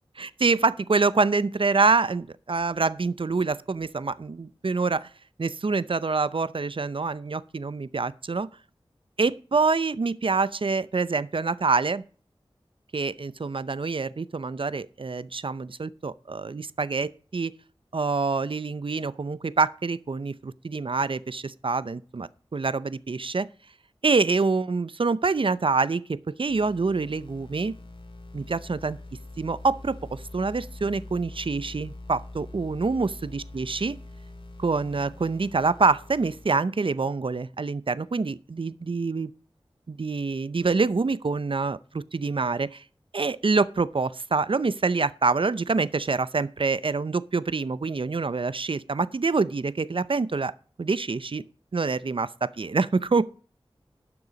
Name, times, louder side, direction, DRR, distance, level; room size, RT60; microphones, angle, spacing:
voice 1, 0.4-5.1 5.4-8.5 9.2-12.0 12.9-17.5 17.9-23.5 24.0-27.7 28.3-29.0 29.4-34.0 34.6-39.3 39.9-42.8 43.1-50.5 50.8-51.4 51.7-53.2, right 4 dB, 60° right, 0.6 m, -26 dB
sound 1, 26.5-36.5, left 2 dB, 60° left, 2.9 m, -44 dB
12.0 x 6.9 x 5.2 m
wide cardioid pair, 55°, 10 cm